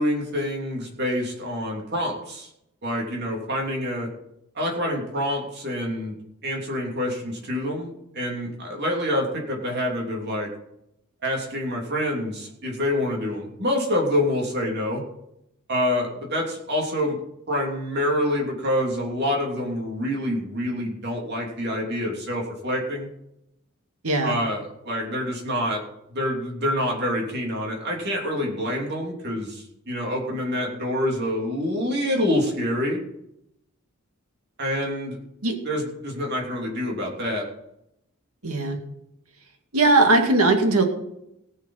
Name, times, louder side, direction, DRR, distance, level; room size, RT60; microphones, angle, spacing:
voice 1, 0.0-2.5 2.8-4.1 4.5-6.2 6.4-10.5 11.2-15.0 15.7-17.2 17.5-23.1 24.2-25.8 26.1-33.0 34.6-35.2 35.6-37.4, left 1 dB, 50° right, -1 dB, 3.0 m, -26 dB
voice 2, 24.0-24.4 35.4-35.6 38.4-38.8 39.7-40.8, right 2 dB, 80° right, 4 dB, 2.2 m, -19 dB
19.0 x 6.4 x 5.7 m, 0.81 s
head